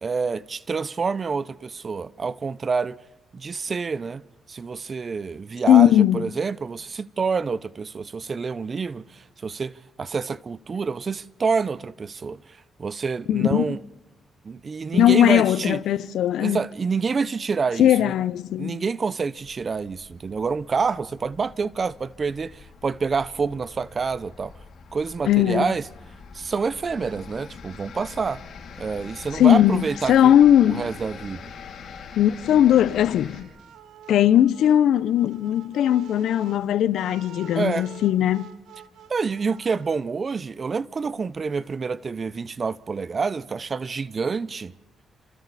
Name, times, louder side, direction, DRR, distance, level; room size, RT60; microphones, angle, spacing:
voice 1, 0.0-3.0 3.3-4.2 4.5-12.4 12.8-13.8 14.4-15.8 16.4-18.1 18.6-24.5 24.9-25.8 26.3-28.4 28.8-30.4 30.6-31.5 37.6-37.9 39.1-44.7, right 5 dB, 40° right, 0.7 m, -27 dB
voice 2, 5.7-6.2 13.3-13.8 14.9-16.6 17.8-18.8 25.3-25.7 29.3-29.8 30.1-30.9 32.2-33.5 34.1-38.5, left 11 dB, 80° left, 0.7 m, -18 dB
sound 1, 19.4-33.4, left 6 dB, 60° left, 4.8 m, -43 dB
sound 2, 33.3-40.0, right 9 dB, 80° right, 1.4 m, -46 dB
29.0 x 26.5 x 4.2 m
cardioid pair, 95°, 0 cm